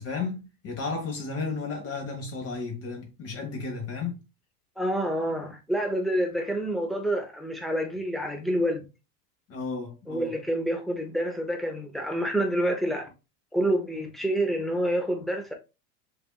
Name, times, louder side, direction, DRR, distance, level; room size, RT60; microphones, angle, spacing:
voice 1, 0.0-4.2 9.5-10.3, left 4 dB, 30° left, 1.3 m, -33 dB
voice 2, 4.8-8.8 10.1-13.1 13.5-15.5, right 1 dB, ahead, 0.7 m, -28 dB
6.6 x 2.7 x 2.3 m
hypercardioid pair, 110°, 49 cm